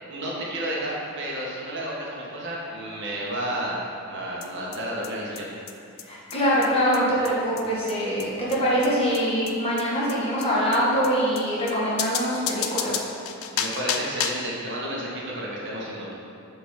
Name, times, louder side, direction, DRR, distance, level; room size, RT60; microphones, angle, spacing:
voice 1, 0.0-3.8 4.1-5.5 13.5-16.1, right 1 dB, 55° right, -5 dB, 1.6 m, -31 dB
sound 1, 4.4-4.5 4.7-4.8 5.0-5.1 5.4-5.5 5.7-5.8 6.0-6.1 6.3-6.4 6.6-6.7 6.9-7.0 7.2-7.3 7.6-7.7 7.9-8.0 8.2-8.3 8.5-8.6 8.8-8.9 9.1-9.2 9.5-9.6 9.8-9.9 10.1-10.2 10.4-10.5 10.7-10.8 11.0-11.1 11.4-11.5 11.7-11.8 12.0-14.5, left 7 dB, 75° left, 0.5 m, -30 dB
voice 2, 6.1-13.1, equal, 25° left, -7 dB, 1.8 m, -24 dB
7.0 x 4.8 x 5.8 m, 2.5 s
head